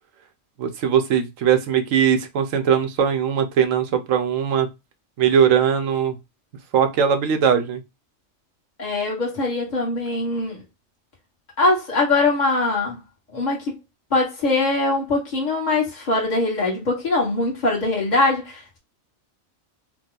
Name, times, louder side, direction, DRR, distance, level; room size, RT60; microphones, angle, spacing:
voice 1, 0.6-4.7 5.2-6.2 6.7-7.8, right 8 dB, 80° right, 1.1 m, -20 dB
voice 2, 8.8-10.6 11.6-13.0 13.3-13.7 14.1-18.8, left 2 dB, 35° left, 1.6 m, -22 dB
4.8 x 2.3 x 3.7 m
omnidirectional pair, 1.3 m